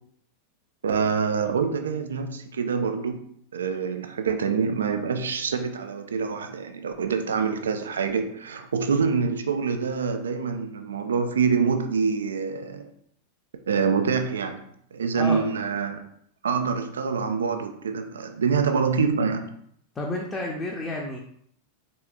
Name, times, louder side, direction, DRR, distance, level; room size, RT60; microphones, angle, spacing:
voice 1, 0.8-3.3 3.5-12.9 13.7-14.6 14.9-16.0 16.4-19.5, right 5 dB, 65° right, 7 dB, 0.4 m, -26 dB
voice 2, 20.0-21.2, left 2 dB, 15° left, -1 dB, 0.6 m, -30 dB
4.2 x 4.0 x 2.3 m, 0.67 s
figure-of-eight pair, 90°, 0 cm